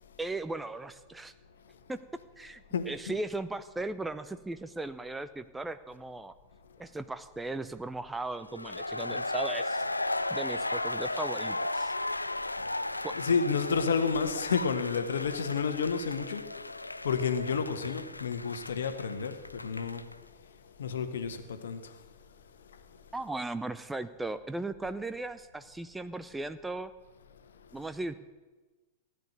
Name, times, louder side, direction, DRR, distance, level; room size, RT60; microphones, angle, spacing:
voice 1, 0.2-1.3 1.9-2.0 2.4-6.4 6.8-9.8 10.3-11.9 13.0-13.2 23.1-26.9 27.7-28.2, right 2 dB, 10° right, 0.6 m, -37 dB
sound 1, 8.5-20.1, left 2 dB, 85° left, 0.5 m, -35 dB
voice 2, 13.1-16.6 17.0-20.1 20.8-22.0 22.7-22.8, left 5 dB, 65° left, 1.3 m, -30 dB
16.0 x 9.3 x 8.0 m
figure-of-eight pair, 95°, 0 cm